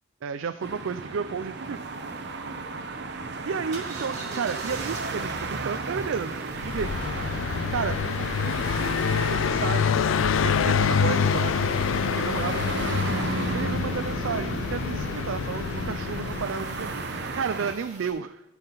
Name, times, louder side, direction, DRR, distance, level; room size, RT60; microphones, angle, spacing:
voice 1, 0.2-1.9 3.4-6.9 7.7-11.9 12.1-13.0 13.2-18.4, right 6 dB, 85° right, 10 dB, 0.4 m, -33 dB
sound 1, 0.6-17.7, right 3 dB, 60° right, 0.9 m, -34 dB
sound 2, 3.7-18.1, right 2 dB, 40° right, 2.4 m, -43 dB
Car passing by, 6.5-17.2, left 6 dB, 85° left, 0.4 m, -26 dB
15.0 x 5.9 x 3.9 m, 0.96 s
head